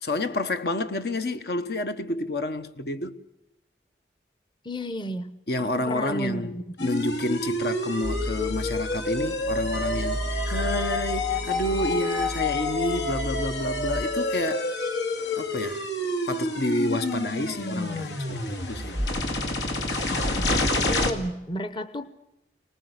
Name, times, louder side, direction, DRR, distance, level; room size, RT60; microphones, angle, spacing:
voice 1, 0.0-3.2 5.5-6.5 6.8-14.7 15.4-15.9 16.3-19.0, left 2 dB, 65° left, 1.0 m, -29 dB
voice 2, 4.6-5.3 5.6-6.9 20.9-22.1, equal, 25° left, 0.9 m, -32 dB
sound 1, 6.8-21.1, left 2 dB, 85° left, 2.2 m, -28 dB
sound 2, 8.0-14.0, equal, 45° left, 4.9 m, -33 dB
25.5 x 19.0 x 8.1 m
head